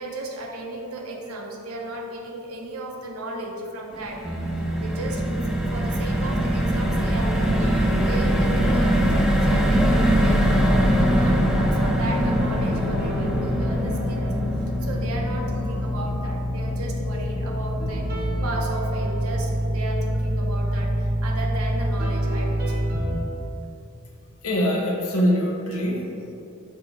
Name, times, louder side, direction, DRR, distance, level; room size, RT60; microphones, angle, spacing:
voice 1, 0.0-4.2 4.8-14.4 14.8-22.9, right 1 dB, 80° right, 1 dB, 0.8 m, -35 dB
sound 1, 3.9-20.2 20.6-20.8 21.0-21.3, equal, ahead, 0.3 m, -24 dB
sound 2, 4.2-23.1, equal, 45° right, 0.9 m, -27 dB
voice 2, 19.3-19.6 20.6-20.8 24.4-26.1, equal, 75° left, -1 dB, 0.9 m, -25 dB
6.3 x 2.9 x 5.2 m, 2.7 s
head